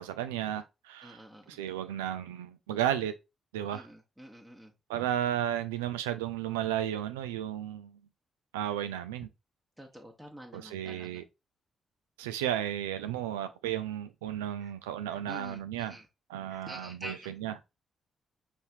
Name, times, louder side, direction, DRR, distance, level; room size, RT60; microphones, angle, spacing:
voice 1, 0.0-1.2 1.5-3.1 3.5-3.9 4.9-8.0 8.5-9.3 10.5-11.2 12.2-16.0 16.3-17.6, right 11 dB, 75° right, 0.4 m, -33 dB
voice 2, 1.0-1.6 3.7-4.7 9.8-11.2 14.6-14.7 15.1-16.0 16.5-17.3, equal, 5° right, 1.1 m, -47 dB
5.5 x 3.4 x 2.7 m
figure-of-eight pair, 40°, 0 cm